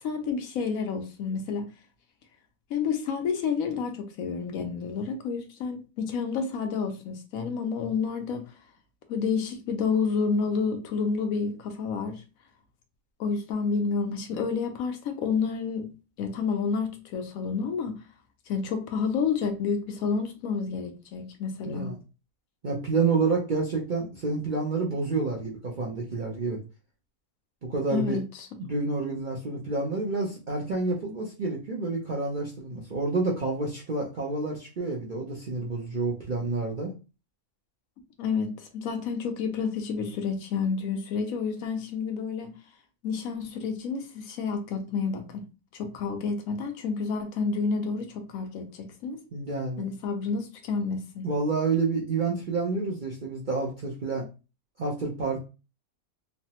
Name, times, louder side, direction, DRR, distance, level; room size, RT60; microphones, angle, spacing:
voice 1, 0.0-1.7 2.7-8.4 9.1-12.2 13.2-15.9 16.2-18.0 18.5-21.9 27.9-28.5 38.2-42.5 43.0-45.4 45.7-49.2 49.8-51.3, left 5 dB, 75° left, 1.0 m, -29 dB
voice 2, 22.6-26.6 27.6-28.2 28.6-36.9 49.3-49.9 51.2-54.3 54.8-55.4, right 3 dB, 55° right, 0.5 m, -29 dB
3.2 x 2.0 x 2.8 m
omnidirectional pair, 1.5 m